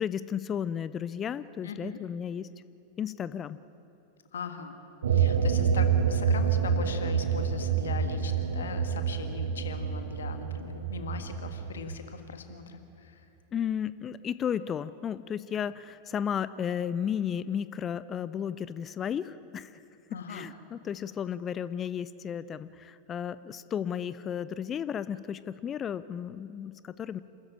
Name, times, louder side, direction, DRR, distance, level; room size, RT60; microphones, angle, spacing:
voice 1, 0.0-2.5 3.0-3.6 13.5-19.8 20.1-27.2, left 8 dB, 25° left, 16 dB, 0.5 m, -33 dB
voice 2, 1.6-2.0 4.3-4.7 5.1-13.2 20.1-20.5, left 6 dB, 65° left, 7 dB, 1.7 m, -40 dB
sound 1, 5.0-11.9, right 7 dB, 65° right, 1.3 m, -27 dB
27.5 x 13.5 x 8.7 m, 2.7 s
figure-of-eight pair, 90°, 0 cm